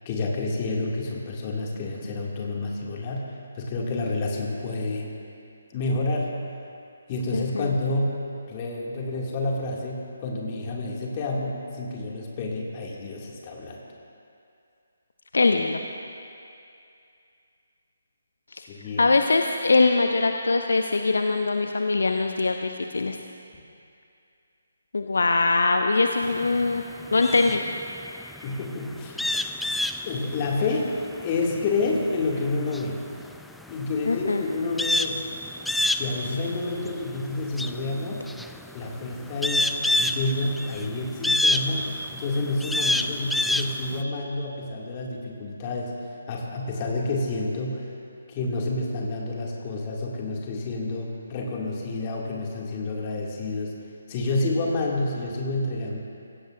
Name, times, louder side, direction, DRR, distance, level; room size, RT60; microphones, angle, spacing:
voice 1, 0.1-5.1 5.7-6.4 7.1-13.8 18.7-19.1 28.4-29.3 30.0-30.9 31.2-33.0 33.7-35.2 35.9-38.3 38.7-46.0 46.3-47.9 48.3-53.7 54.1-56.0, left 2 dB, 25° left, -2 dB, 2.2 m, -29 dB
voice 2, 7.3-7.7 15.3-15.8 18.5-18.7 19.0-23.2 24.9-26.8 27.1-27.6 34.1-34.4, left 3 dB, 60° left, 5 dB, 0.7 m, -22 dB
sound 1, 26.2-44.0, left 1 dB, ahead, 0.3 m, -28 dB
24.0 x 16.5 x 2.5 m, 2.5 s
figure-of-eight pair, 145°, 0 cm